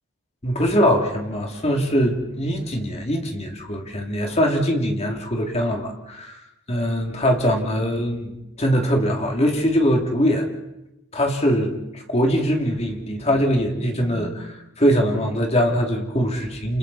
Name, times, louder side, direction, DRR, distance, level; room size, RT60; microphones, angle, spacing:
voice 1, 0.4-6.3 6.7-8.3 8.6-10.5 11.1-16.8, equal, 30° left, 1 dB, 2.8 m, -22 dB
29.5 x 28.5 x 4.2 m, 0.94 s
head